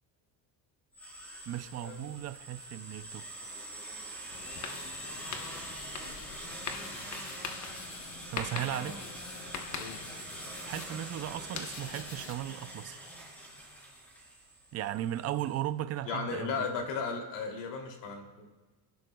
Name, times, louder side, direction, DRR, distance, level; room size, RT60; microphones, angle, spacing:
sound 1, 0.9-15.6, right 1 dB, 5° left, 3.4 m, -44 dB
voice 1, 1.5-3.3 8.3-9.1 10.5-13.0 14.7-16.7, right 12 dB, 35° right, 0.4 m, -36 dB
sound 2, 4.3-12.3, left 5 dB, 40° left, 1.1 m, -43 dB
voice 2, 8.5-9.0 9.7-10.0 16.0-18.5, left 5 dB, 65° left, 2.8 m, -36 dB
26.5 x 11.5 x 2.3 m
cardioid pair, 160°, 45 cm